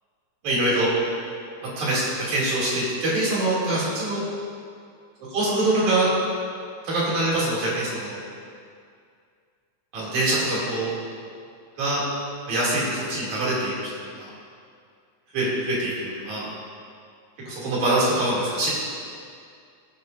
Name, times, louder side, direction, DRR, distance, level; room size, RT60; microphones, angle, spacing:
voice 1, 0.4-0.9 1.8-4.2 5.3-6.1 6.8-8.2 9.9-10.9 11.8-12.0 12.5-13.9 14.2-14.3 15.3-16.5 17.5-18.7, right 1 dB, 70° right, -7 dB, 4.3 m, -24 dB
20.5 x 7.9 x 2.7 m, 2.3 s
omnidirectional pair, 3.5 m